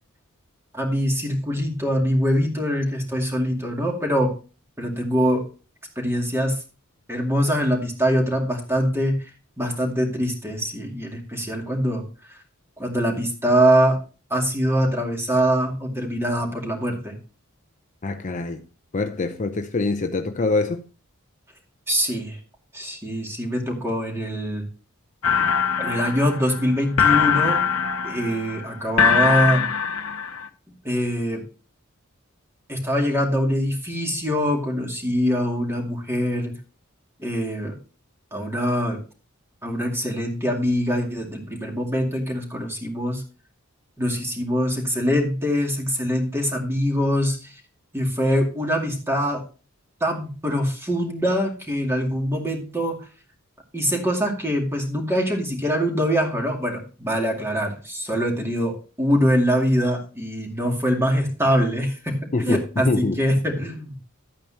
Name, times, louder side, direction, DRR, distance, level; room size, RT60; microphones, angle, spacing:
voice 1, 0.7-4.4 4.8-5.5 6.0-6.6 7.1-9.3 9.6-12.4 12.8-14.0 14.3-17.2 21.9-22.4 22.7-24.7 25.8-27.6 28.0-29.6 30.8-31.4 32.7-36.5 37.2-37.8 38.3-39.0 39.6-43.2 44.0-47.6 47.9-49.4 50.0-53.1 53.7-63.9, equal, 10° right, 2.3 m, -23 dB
voice 2, 18.0-18.6 18.9-20.8 62.3-63.2, left 3 dB, 35° left, 0.6 m, -24 dB
sound 1, 25.2-30.5, left 7 dB, 70° left, 0.8 m, -22 dB
11.5 x 8.9 x 2.8 m
head